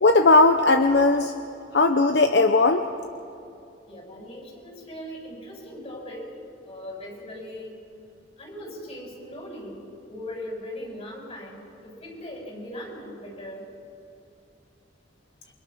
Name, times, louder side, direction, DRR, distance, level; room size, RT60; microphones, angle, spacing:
voice 1, 0.0-1.3 1.7-2.8, left 3 dB, 70° left, 7 dB, 0.8 m, -18 dB
voice 2, 3.9-6.3 6.7-7.8 8.4-9.8 10.1-13.7, left 1 dB, 40° left, -1 dB, 7.4 m, -39 dB
28.5 x 24.5 x 6.3 m, 2.7 s
head